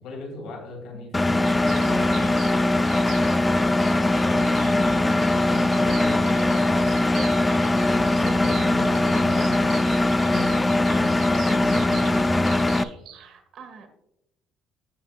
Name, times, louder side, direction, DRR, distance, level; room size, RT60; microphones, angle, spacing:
voice 1, 0.0-2.6 4.3-6.8 7.6-9.9 10.3-12.4, left 2 dB, 75° left, 0 dB, 2.9 m, -38 dB
Engine, 1.1-12.8, left 2 dB, 10° left, 0.3 m, -21 dB
sound 1, 1.4-13.3, right 9 dB, 75° right, 2.3 m, -42 dB
voice 2, 13.1-13.9, right 5 dB, 50° right, 6 dB, 1.4 m, -46 dB
14.5 x 5.5 x 2.4 m, 0.82 s
cardioid pair, 150°, 0 cm